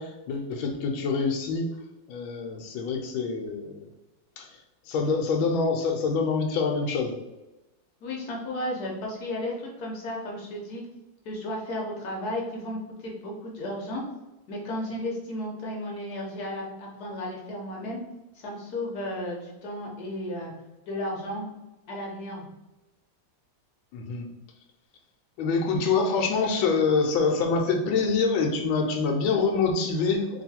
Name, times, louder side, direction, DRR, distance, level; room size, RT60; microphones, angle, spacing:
voice 1, 0.0-1.7 2.1-3.9 4.4-4.5 4.9-7.2 23.9-24.3 25.4-30.4, left 4 dB, 85° left, 3 dB, 1.4 m, -25 dB
voice 2, 8.0-10.8 11.2-14.0 14.5-18.0 18.3-20.5 20.9-21.5 21.9-22.5, left 1 dB, 60° left, -1 dB, 1.2 m, -34 dB
3.0 x 3.0 x 4.2 m, 1.0 s
omnidirectional pair, 2.1 m